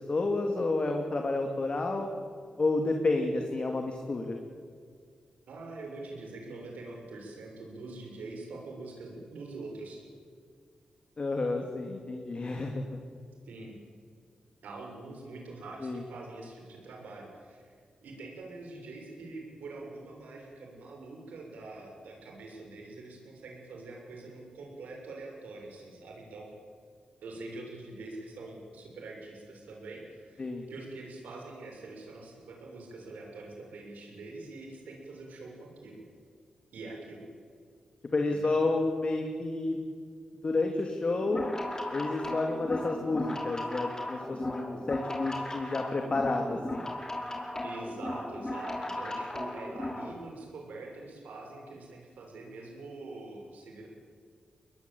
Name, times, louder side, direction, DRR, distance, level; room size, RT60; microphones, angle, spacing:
voice 1, 0.1-2.1 2.6-4.4 11.2-13.0 15.8-16.0 30.4-30.6 38.1-39.8 40.4-41.5 41.9-46.8, left 2 dB, 45° left, 3 dB, 2.8 m, -30 dB
voice 2, 5.5-10.0 13.4-13.7 14.6-26.5 27.2-36.0 36.7-37.3 38.3-38.7 47.6-53.9, right 2 dB, 85° right, 0 dB, 6.8 m, -44 dB
sound 1, 41.2-50.1, left 1 dB, 25° left, 5.1 m, -37 dB
22.0 x 21.0 x 8.8 m, 2.1 s
cardioid pair, 60°, 3 cm